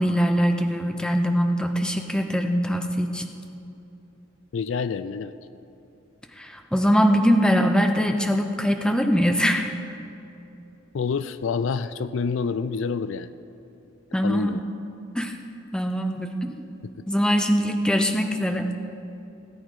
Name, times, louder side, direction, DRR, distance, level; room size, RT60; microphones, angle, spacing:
voice 1, 0.0-3.2 6.4-9.7 14.1-14.6 15.2-15.3 15.7-16.5 17.1-18.7, equal, 5° left, 5 dB, 0.6 m, -22 dB
voice 2, 4.5-5.3 10.9-13.3 14.2-14.6, left 5 dB, 65° left, 13 dB, 0.4 m, -27 dB
17.5 x 8.8 x 4.8 m, 2.8 s
head